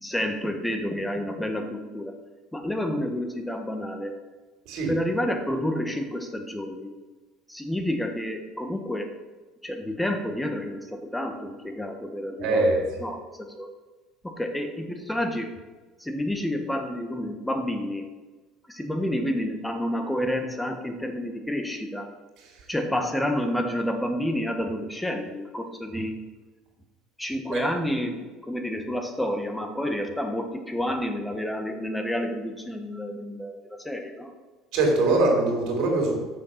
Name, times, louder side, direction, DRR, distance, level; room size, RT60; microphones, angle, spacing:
voice 1, 0.0-2.1 2.5-4.2 4.9-6.9 7.5-9.1 9.6-13.7 14.2-15.6 16.0-18.1 18.7-22.1 22.7-26.2 27.2-34.3, left 1 dB, 5° left, 5 dB, 1.2 m, -29 dB
voice 2, 12.4-12.8 22.4-22.6 27.5-27.6 34.7-36.2, right 2 dB, 65° right, 0 dB, 3.1 m, -23 dB
6.6 x 6.5 x 5.8 m, 1.2 s
supercardioid pair, 100°, 0 cm